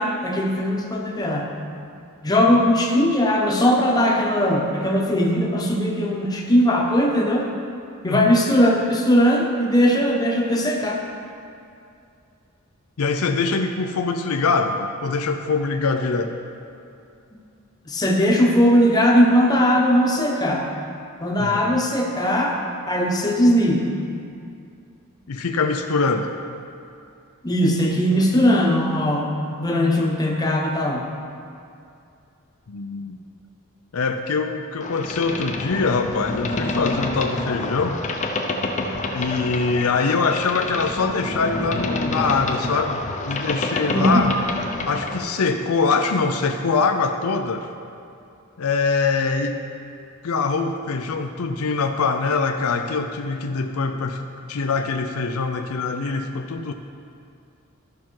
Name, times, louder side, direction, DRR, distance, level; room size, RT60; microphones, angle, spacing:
voice 1, 0.0-1.5 2.2-7.5 8.0-11.0 17.9-20.6 21.2-22.6 22.9-23.9 27.4-31.1 43.9-44.2, equal, 20° left, -1 dB, 1.0 m, -19 dB
voice 2, 13.0-16.3 21.4-21.8 25.3-26.3 32.7-33.2 33.9-38.0 39.1-44.3 44.9-47.7 48.6-49.6 50.2-56.7, left 4 dB, 90° left, 5 dB, 0.5 m, -23 dB
Boat Water vehicle, 34.8-45.3, left 2 dB, 35° left, 0.7 m, -28 dB
13.0 x 5.9 x 4.6 m, 2.5 s
head